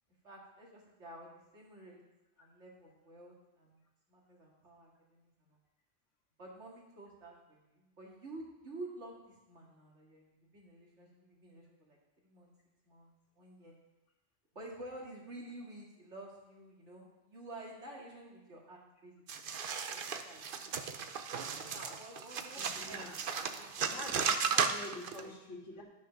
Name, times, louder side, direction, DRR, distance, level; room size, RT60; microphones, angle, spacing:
voice 1, 0.2-2.0 2.4-3.8 4.1-5.6 6.4-12.0 12.2-12.5 12.9-13.7 14.5-19.2 20.0-20.7 21.6-24.0 24.5-24.7 25.2-25.6, right 1 dB, 75° right, -2 dB, 2.6 m, -51 dB
sound 1, 19.3-25.2, right 6 dB, 55° right, 0.8 m, -35 dB
voice 2, 22.6-23.3 23.9-25.8, left 1 dB, 90° left, 0 dB, 2.1 m, -47 dB
11.5 x 6.3 x 5.8 m, 0.98 s
omnidirectional pair, 1.2 m